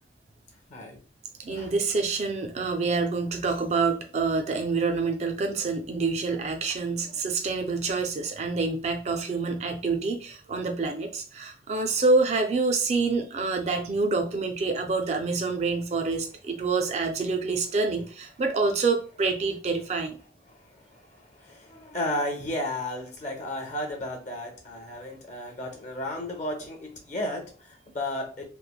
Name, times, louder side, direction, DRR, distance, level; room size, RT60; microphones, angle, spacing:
voice 1, 1.4-20.2, right 4 dB, 35° right, 4 dB, 0.3 m, -27 dB
voice 2, 6.9-7.2 20.5-28.5, left 1 dB, 40° left, 3 dB, 0.5 m, -34 dB
3.1 x 2.0 x 2.3 m, 0.38 s
head